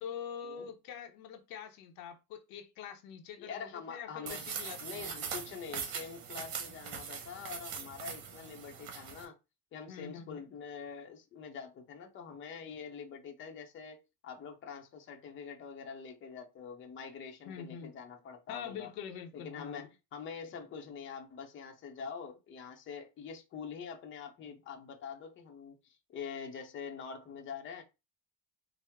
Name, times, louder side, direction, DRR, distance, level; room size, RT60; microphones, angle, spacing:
voice 1, 0.0-5.4 9.9-10.4 17.5-17.9 18.5-19.9, left 8 dB, 75° left, 0.7 m, -45 dB
voice 2, 3.4-4.5 4.8-9.4 9.7-18.9 19.3-27.8, left 6 dB, 35° left, 0.6 m, -45 dB
sound 1, 4.3-9.3, right 7 dB, 65° right, 1.1 m, -41 dB
4.5 x 2.0 x 3.5 m
cardioid pair, 160°, 36 cm